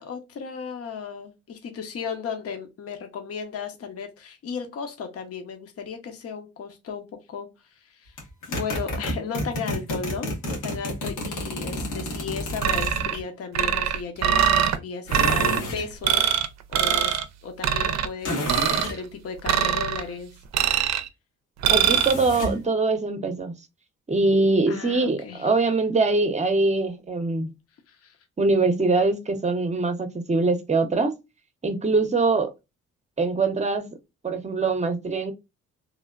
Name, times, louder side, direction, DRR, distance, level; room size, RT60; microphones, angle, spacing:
voice 1, 0.0-7.5 7.8-8.2 8.5-16.3 16.7-17.2 17.4-20.3 24.7-25.5 27.9-28.2, left 5 dB, 50° left, 0.8 m, -35 dB
sound 1, 8.2-13.2 15.1-15.9 18.2-19.0 21.7-22.6, left 1 dB, 90° left, 1.3 m, -30 dB
sound 2, 12.6-13.2 13.5-14.8 15.1-15.6 16.0-16.5 16.7-17.2 17.6-18.1 18.5-18.9 19.5-20.0 20.5-21.1 21.6-22.1, right 9 dB, 60° right, 0.5 m, -22 dB
voice 2, 21.7-23.5 24.1-27.5 28.4-31.1 31.6-32.5 33.2-33.9 34.2-35.3, right 3 dB, 25° right, 0.7 m, -23 dB
3.2 x 2.1 x 2.3 m
cardioid pair, 90°, 30 cm